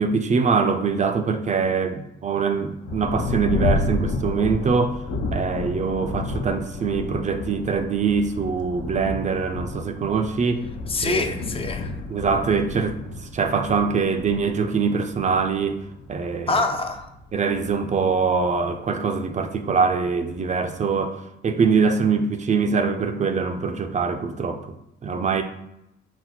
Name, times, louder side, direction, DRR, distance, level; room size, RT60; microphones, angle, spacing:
voice 1, 0.0-5.0 5.3-10.7 11.0-11.2 12.1-13.0 13.3-15.8 16.1-16.6 17.3-24.6 25.0-25.4, right 5 dB, 35° right, 0.4 m, -23 dB
Thunder, 2.8-18.9 19.7-19.8 20.3-20.8, left 2 dB, 65° left, 0.7 m, -31 dB
voice 2, 10.9-11.9 16.5-17.1, left 3 dB, 30° left, 0.4 m, -25 dB
4.0 x 2.1 x 4.2 m
cardioid pair, 90°, 20 cm